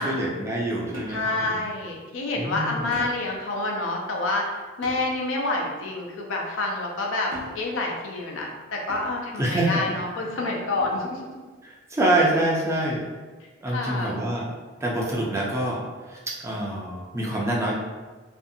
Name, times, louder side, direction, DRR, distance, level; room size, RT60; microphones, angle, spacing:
voice 1, 0.0-1.2 1.5-1.6 2.4-2.8 9.4-9.8 11.6-13.0 13.6-14.4 14.8-15.8 16.1-17.7, right 1 dB, 15° right, -4 dB, 0.4 m, -25 dB
sound 1, 0.9-1.5 2.9-3.4 4.8-5.3 7.3-7.9 8.9-9.4 10.8-11.2, equal, 90° right, 0.7 m, -40 dB
voice 2, 1.1-11.2 13.7-14.3, left 2 dB, 80° left, 0 dB, 0.5 m, -28 dB
2.6 x 2.4 x 2.6 m, 1.4 s
head